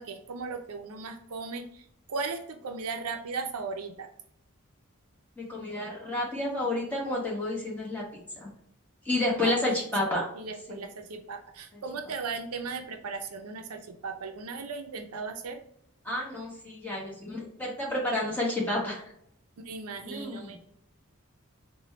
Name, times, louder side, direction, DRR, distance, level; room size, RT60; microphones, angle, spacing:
voice 1, 0.0-4.1 9.4-9.5 10.3-15.6 19.6-20.6, right 4 dB, 85° right, 5 dB, 0.5 m, -37 dB
voice 2, 5.4-8.0 8.4-8.5 9.0-10.3 10.7-10.8 16.0-19.0 20.0-20.6, left 1 dB, 5° left, -4 dB, 1.0 m, -30 dB
4.0 x 2.2 x 3.1 m, 0.71 s
head